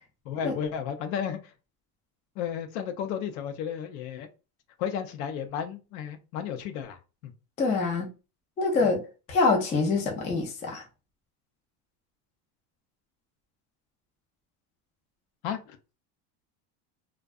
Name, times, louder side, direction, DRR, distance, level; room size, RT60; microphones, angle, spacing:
voice 1, 0.3-1.5 2.4-4.3 4.8-7.3 15.4-15.8, left 8 dB, 65° left, 0.6 m, -33 dB
voice 2, 7.6-8.1 8.6-9.0 9.3-10.8, left 3 dB, 15° left, 0.3 m, -25 dB
2.6 x 2.2 x 2.3 m
cardioid pair, 145°, 45 cm